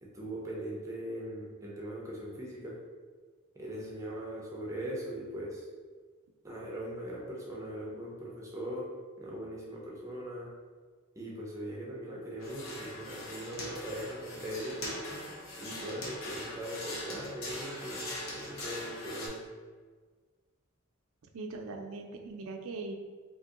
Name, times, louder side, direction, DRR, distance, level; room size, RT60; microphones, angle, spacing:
voice 1, 0.0-2.8 3.5-5.7 6.4-8.9 9.2-10.5 11.1-14.8 15.6-19.4, right 1 dB, 15° right, -4 dB, 0.5 m, -40 dB
sound 1, 12.4-19.3, left 1 dB, 80° left, 0.8 m, -41 dB
voice 2, 21.3-23.0, right 3 dB, 85° right, 4 dB, 0.4 m, -40 dB
2.8 x 2.7 x 3.7 m, 1.5 s
head